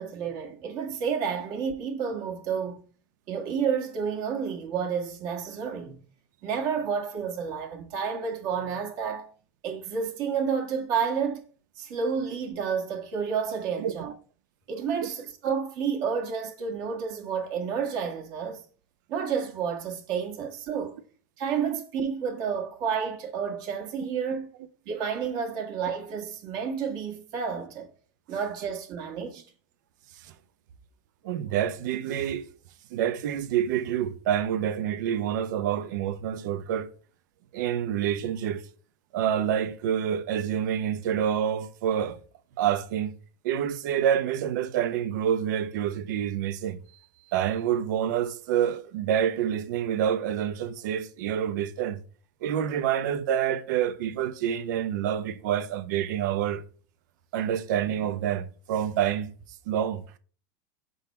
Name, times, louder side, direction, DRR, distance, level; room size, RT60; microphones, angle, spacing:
voice 1, 0.0-2.9 3.3-6.0 6.4-9.3 9.6-11.4 11.8-14.1 14.7-18.6 19.1-21.0 21.4-24.5 24.9-27.9 28.3-29.4, right 6 dB, 45° right, 1.6 m, -30 dB
voice 2, 31.2-32.4 32.9-36.9 37.5-38.6 39.1-42.2 42.6-43.1 43.4-46.8 47.3-52.0 52.4-56.6 57.3-59.3 59.7-60.0, right 9 dB, 70° right, 0.8 m, -27 dB
5.3 x 4.0 x 5.7 m
supercardioid pair, 155°, 10 cm